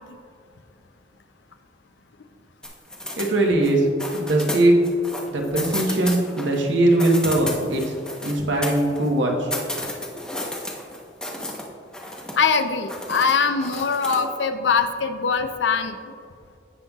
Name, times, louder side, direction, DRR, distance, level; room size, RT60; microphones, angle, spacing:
sound 1, 2.6-3.7 4.0-6.6 6.9-9.1 9.5-11.6 11.9-12.6 12.9-14.3, left 1 dB, 5° left, 1.0 m, -32 dB
voice 1, 3.2-3.9 4.1-4.8 5.3-7.9 8.2-9.5, right 1 dB, 90° right, 1 dB, 1.2 m, -20 dB
voice 2, 12.4-16.0, left 5 dB, 80° left, 9 dB, 0.6 m, -22 dB
16.0 x 5.4 x 2.4 m, 2.3 s
head